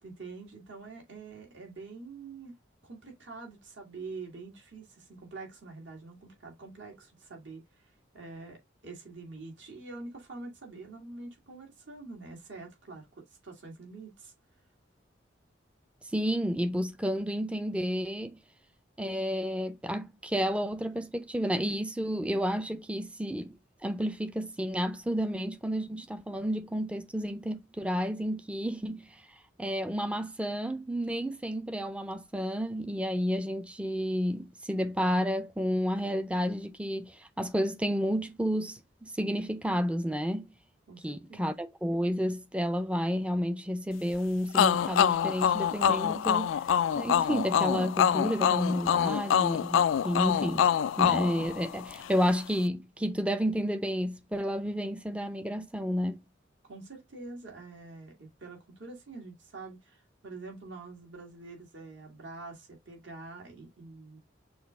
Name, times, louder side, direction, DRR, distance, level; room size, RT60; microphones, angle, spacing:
voice 1, 0.0-2.6 2.8-7.9 8.1-14.3 40.9-41.5 56.6-64.2, right 3 dB, 70° right, 2.1 m, -46 dB
voice 2, 16.1-18.4 19.0-23.6 23.8-29.1 29.6-40.5 41.0-46.6 46.9-50.7 51.0-56.2, equal, 5° right, 0.4 m, -31 dB
sound 1, 44.5-52.1, left 8 dB, 80° left, 0.3 m, -26 dB
6.2 x 2.4 x 3.4 m
head